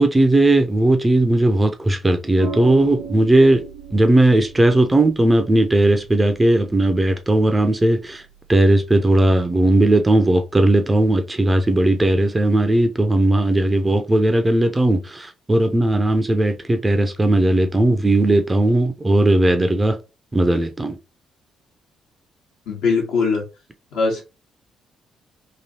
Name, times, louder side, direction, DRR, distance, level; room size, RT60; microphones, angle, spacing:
voice 1, 0.0-3.6 3.9-8.2 8.5-20.0 20.3-21.0, right 1 dB, 20° right, 0.5 m, -17 dB
sound 1, 2.4-10.9, right 4 dB, 85° right, 0.4 m, -39 dB
voice 2, 22.7-23.4 23.9-24.2, left 4 dB, 70° left, 1.1 m, -20 dB
3.0 x 2.6 x 2.8 m
figure-of-eight pair, 45°, 0 cm